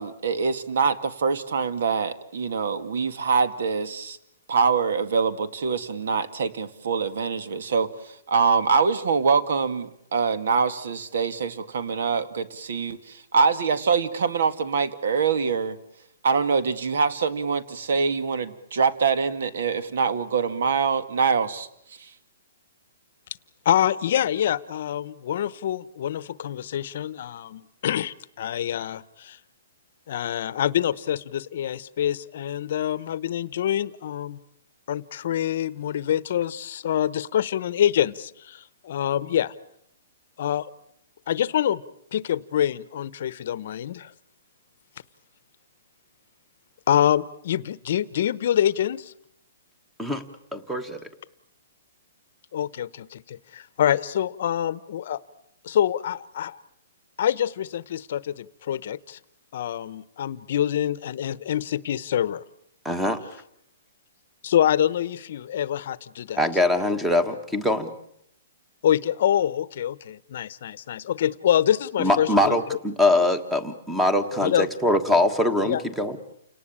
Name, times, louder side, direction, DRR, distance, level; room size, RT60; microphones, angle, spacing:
voice 1, 0.0-4.2 4.5-7.9 8.3-15.8 16.2-21.7 22.0-22.1, right 5 dB, 65° right, 13 dB, 2.0 m, -24 dB
voice 2, 23.6-29.4 30.1-34.4 34.9-39.5 40.4-40.7 41.3-41.8 42.1-44.1 46.9-49.1 52.5-55.2 55.6-56.6 57.2-59.2 59.5-62.4 64.4-66.4 68.8-72.6 74.4-74.7 75.6-75.8, left 10 dB, 45° left, 18 dB, 0.9 m, -25 dB
voice 3, 50.5-51.0 62.8-63.2 66.4-67.9 72.0-76.2, left 1 dB, 5° right, 11 dB, 1.3 m, -23 dB
29.5 x 18.5 x 8.8 m, 0.72 s
hypercardioid pair, 175°, 0 cm